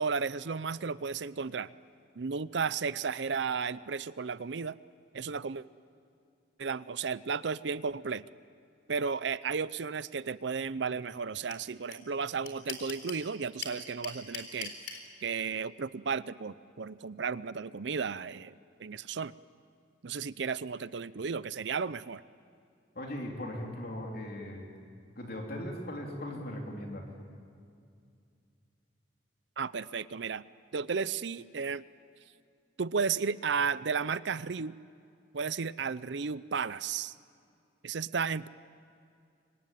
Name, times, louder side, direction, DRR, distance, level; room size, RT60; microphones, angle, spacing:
voice 1, 0.0-1.7 2.2-4.8 5.1-5.6 6.6-8.2 8.9-14.9 15.2-19.3 20.0-22.2 29.6-30.4 30.7-31.8 32.8-34.8 35.3-37.1 37.8-38.5, right 5 dB, 70° right, 17 dB, 0.6 m, -33 dB
sound 1, 11.5-11.6 11.9-12.0 12.2-13.2 13.6-15.0, left 7 dB, 80° left, 4.0 m, -38 dB
voice 2, 22.9-24.7 25.2-27.0, left 1 dB, 55° left, 0 dB, 3.3 m, -38 dB
27.0 x 23.5 x 9.2 m, 2.4 s
head